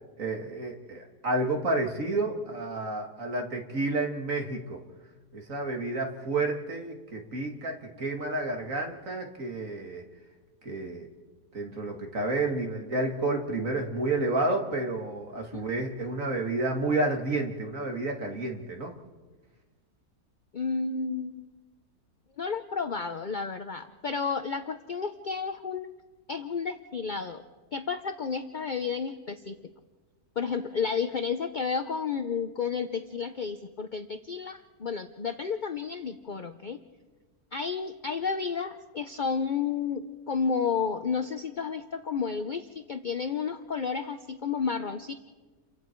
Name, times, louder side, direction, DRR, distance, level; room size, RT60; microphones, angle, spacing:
voice 1, 0.2-4.8 5.3-10.0 10.6-11.1 11.5-18.9, right 2 dB, 50° right, 2 dB, 2.6 m, -30 dB
voice 2, 20.5-21.5 22.4-25.9 26.3-27.4 27.7-29.6 30.4-36.8 37.5-45.1, left 5 dB, 50° left, 8 dB, 0.6 m, -31 dB
29.5 x 24.0 x 4.6 m, 1.3 s
omnidirectional pair, 1.8 m